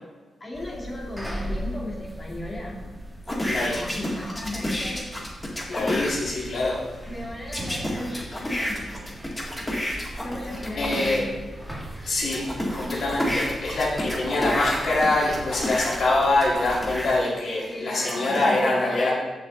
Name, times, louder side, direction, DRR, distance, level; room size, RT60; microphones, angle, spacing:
voice 1, 0.4-2.8 3.7-5.1 7.1-8.8 10.2-11.2 17.7-19.1, left 1 dB, 35° left, -4 dB, 2.0 m, -35 dB
sound 1, 0.5-17.1, equal, ahead, 2.1 m, -39 dB
sound 2, 3.3-6.2 7.5-11.2 11.8-17.1 17.7-18.5, left 1 dB, 15° left, 1.7 m, -30 dB
voice 2, 3.5-3.8 5.7-6.8 9.8-10.1 10.7-11.1 12.0-19.1, left 2 dB, 70° left, -4 dB, 1.9 m, -24 dB
6.3 x 6.1 x 3.7 m, 1.3 s
cardioid pair, 60°, 0 cm